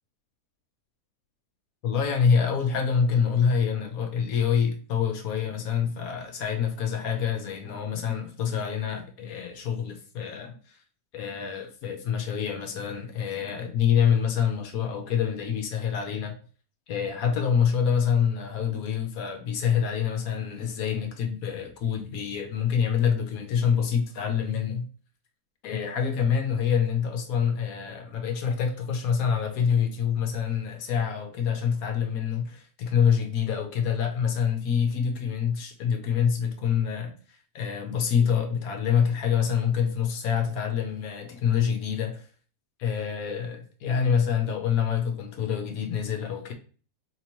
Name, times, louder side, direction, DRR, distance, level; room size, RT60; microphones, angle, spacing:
voice 1, 1.8-10.8 11.1-16.3 16.9-24.9 25.6-42.2 42.8-46.5, left 7 dB, 70° left, 1.1 m, -26 dB
4.3 x 2.9 x 2.9 m
omnidirectional pair, 1.7 m